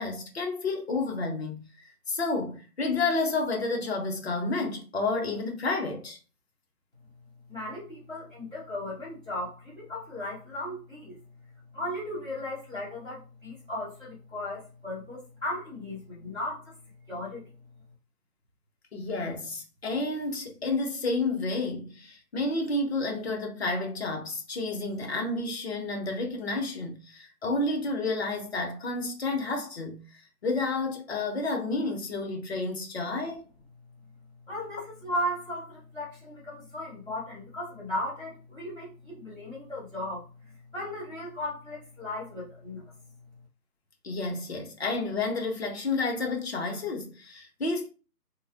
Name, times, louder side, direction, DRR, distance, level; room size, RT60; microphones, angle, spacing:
voice 1, 0.0-1.7 2.1-6.2 18.9-30.0 30.4-33.4 44.0-47.9, left 3 dB, 40° left, 0.7 m, -30 dB
voice 2, 7.5-11.2 11.7-16.7 17.1-17.4 34.5-42.9, left 1 dB, 5° right, 0.6 m, -36 dB
3.0 x 2.0 x 2.5 m
figure-of-eight pair, 145°, 49 cm